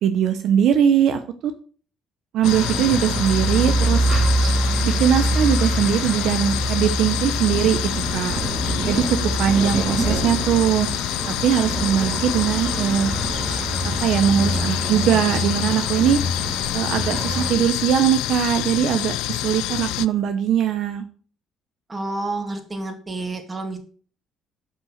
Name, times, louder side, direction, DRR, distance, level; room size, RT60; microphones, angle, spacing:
voice 1, 0.0-1.5 2.3-4.1 4.8-7.8 8.1-8.4 8.9-10.9 11.3-13.1 14.0-16.2 16.7-21.0, right 9 dB, 70° right, 9 dB, 0.9 m, -21 dB
sound 1, 2.4-20.1, left 16 dB, 85° left, 0.4 m, -27 dB
sound 2, 2.4-17.5, right 2 dB, 40° right, 2.5 m, -25 dB
voice 2, 21.9-23.8, right 2 dB, 25° right, 5 dB, 2.6 m, -29 dB
7.5 x 5.9 x 6.6 m, 0.43 s
supercardioid pair, 75°, 0 cm